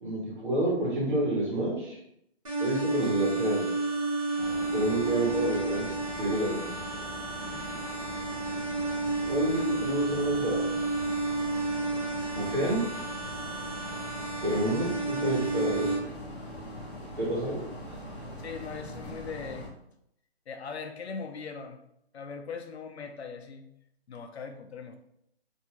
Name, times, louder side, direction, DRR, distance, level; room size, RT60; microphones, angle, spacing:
voice 1, 0.0-2.0 2.6-3.6 4.7-5.9 6.2-6.6 9.2-10.7 12.3-12.8 14.4-15.9 17.2-17.6, right 1 dB, 50° right, -4 dB, 1.2 m, -29 dB
sound 1, 2.4-16.0, right 3 dB, 35° right, 0.7 m, -31 dB
sound 2, 4.4-19.7, equal, 25° left, 0.8 m, -42 dB
voice 2, 7.5-7.8 17.5-17.6 18.4-19.7 20.5-21.8 22.1-23.7 24.1-25.0, left 5 dB, 80° left, 5 dB, 0.6 m, -40 dB
2.7 x 2.3 x 2.8 m, 0.74 s
hypercardioid pair, 175°, 32 cm